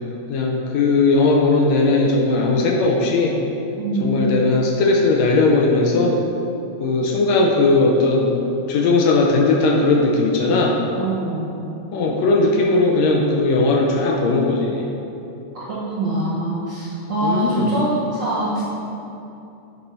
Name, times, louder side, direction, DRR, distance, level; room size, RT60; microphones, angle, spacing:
voice 1, 0.3-3.4 4.0-6.2 6.8-8.3 8.7-10.8 11.9-14.9 17.2-17.7, left 3 dB, 75° left, 0 dB, 1.7 m, -18 dB
voice 2, 3.8-4.4 11.0-11.5 15.5-18.6, right 2 dB, 60° right, -7 dB, 1.2 m, -24 dB
10.0 x 4.0 x 4.2 m, 2.9 s
omnidirectional pair, 3.4 m